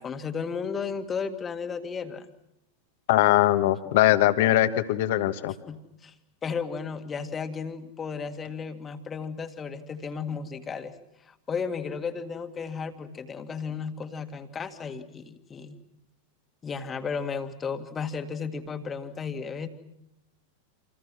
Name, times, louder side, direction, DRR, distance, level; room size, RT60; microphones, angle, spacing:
voice 1, 0.0-2.3 5.7-6.1 6.4-10.9 11.3-15.8 16.6-19.7, left 5 dB, 20° left, 8 dB, 1.9 m, -34 dB
voice 2, 3.1-5.5, left 14 dB, 50° left, 10 dB, 1.4 m, -21 dB
28.0 x 27.5 x 6.3 m, 0.86 s
figure-of-eight pair, 90°, 0 cm